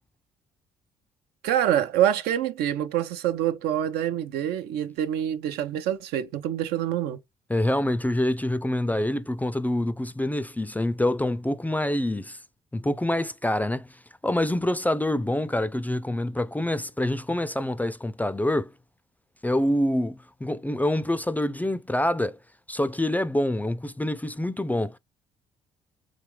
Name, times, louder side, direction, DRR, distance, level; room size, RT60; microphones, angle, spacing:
voice 1, 1.4-7.2, right 11 dB, 70° right, 0.6 m, -26 dB
voice 2, 7.5-12.4 12.7-13.9 14.2-18.7 19.4-22.4 22.7-25.0, left 1 dB, 10° left, 0.4 m, -26 dB
3.7 x 3.3 x 3.1 m
hypercardioid pair, 55°, 17 cm